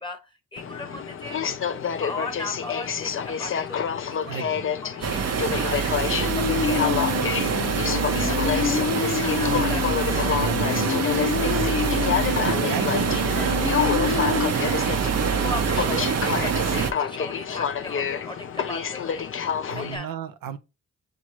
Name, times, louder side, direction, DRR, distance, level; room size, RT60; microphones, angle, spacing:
voice 1, 0.0-1.4 2.0-3.8 4.2-4.5 4.9-6.1 6.5-8.9 9.2-10.8 11.6-11.9 12.6-19.3 19.7-20.1, left 2 dB, 15° left, 1.0 m, -38 dB
Aircraft, 0.6-20.0, left 7 dB, 40° left, 0.5 m, -29 dB
sound 1, 5.0-16.9, right 6 dB, 50° right, 0.7 m, -25 dB
sound 2, 6.0-14.5, left 8 dB, 85° left, 0.6 m, -28 dB
voice 2, 9.5-9.8 10.3-12.0 12.4-13.2 19.7-20.6, right 8 dB, 90° right, 0.5 m, -34 dB
5.9 x 2.4 x 2.9 m
cardioid pair, 60°, 33 cm